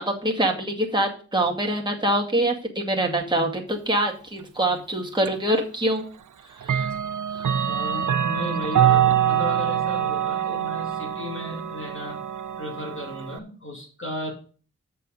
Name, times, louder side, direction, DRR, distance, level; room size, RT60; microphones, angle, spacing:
voice 1, 0.0-6.0 6.6-6.9 7.3-7.5, right 1 dB, 15° right, -1 dB, 2.1 m, -25 dB
Clock, 5.2-5.3 6.6-13.4, right 9 dB, 80° right, 0.5 m, -24 dB
voice 2, 7.6-12.2 12.6-14.3, left 1 dB, 40° left, -1 dB, 2.4 m, -35 dB
7.6 x 6.8 x 5.2 m, 0.40 s
wide cardioid pair, 90°, 30 cm